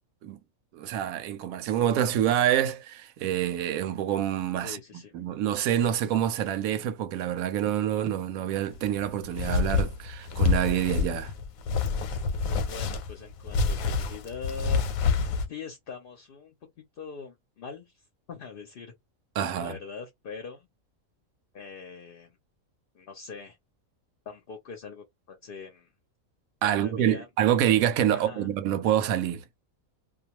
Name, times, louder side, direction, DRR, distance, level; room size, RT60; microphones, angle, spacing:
voice 1, 0.7-4.8 5.1-11.3 19.4-19.8 26.6-29.4, right 10 dB, 80° right, 1.0 m, -26 dB
voice 2, 4.6-5.2 12.5-14.9 15.5-16.5 16.9-18.0 18.3-18.9 19.6-20.7 21.5-22.4 22.9-23.6 24.3-25.9 26.6-27.3 28.1-28.5, left 5 dB, 55° left, 0.6 m, -42 dB
sound 1, 8.7-15.5, left 4 dB, 90° left, 1.0 m, -27 dB
2.3 x 2.3 x 2.8 m
omnidirectional pair, 1.4 m